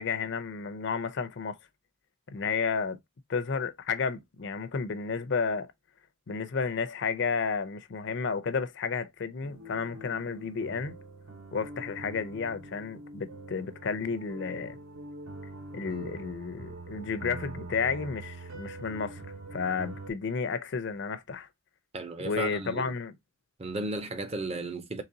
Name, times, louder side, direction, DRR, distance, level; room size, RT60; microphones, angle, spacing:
voice 1, 0.0-1.6 2.3-3.0 3.3-5.7 6.3-10.9 11.5-14.8 15.7-19.3 19.5-21.5 22.2-23.1, left 5 dB, 55° left, 0.5 m, -32 dB
sound 1, 9.4-20.1, right 2 dB, 85° right, 1.1 m, -44 dB
voice 2, 21.9-22.9 23.6-25.0, right 2 dB, 30° right, 0.6 m, -34 dB
3.9 x 3.1 x 2.6 m
head